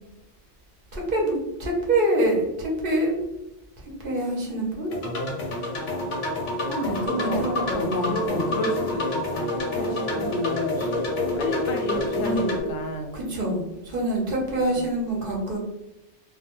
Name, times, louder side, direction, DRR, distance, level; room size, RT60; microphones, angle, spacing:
voice 1, 0.9-3.2 4.0-4.9 6.7-8.5 10.8-10.9 12.2-12.5 13.1-15.6, right 1 dB, 55° right, -2 dB, 0.8 m, -26 dB
sound 1, 4.9-12.6, left 1 dB, 50° left, 0.7 m, -28 dB
voice 2, 6.8-10.8 11.4-13.2 14.5-14.9, left 1 dB, 80° left, 3 dB, 0.9 m, -31 dB
2.3 x 2.1 x 2.8 m, 0.93 s
omnidirectional pair, 1.2 m